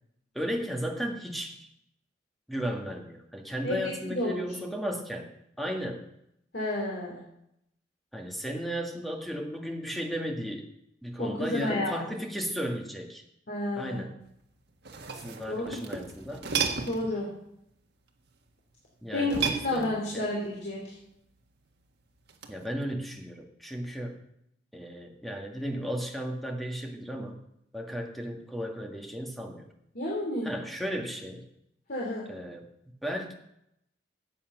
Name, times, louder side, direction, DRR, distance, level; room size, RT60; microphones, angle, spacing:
voice 1, 0.3-1.6 2.5-5.3 5.6-6.1 8.1-10.7 11.0-13.2 13.7-14.2 15.1-16.5 19.0-20.3 22.5-24.2 24.7-27.4 27.7-29.7 30.4-31.5 32.3-32.7 33.0-33.3, equal, ahead, 2 dB, 1.6 m, -35 dB
voice 2, 3.6-4.3 6.5-7.2 11.2-11.9 13.5-14.1 15.4-15.8 16.9-17.3 19.1-21.0 29.9-30.5 31.9-32.2, left 1 dB, 60° left, -3 dB, 2.8 m, -31 dB
sound 1, 14.7-17.1 19.2-20.2 22.3-22.6, right 6 dB, 65° right, 1.5 m, -33 dB
13.0 x 8.6 x 6.0 m, 0.78 s
head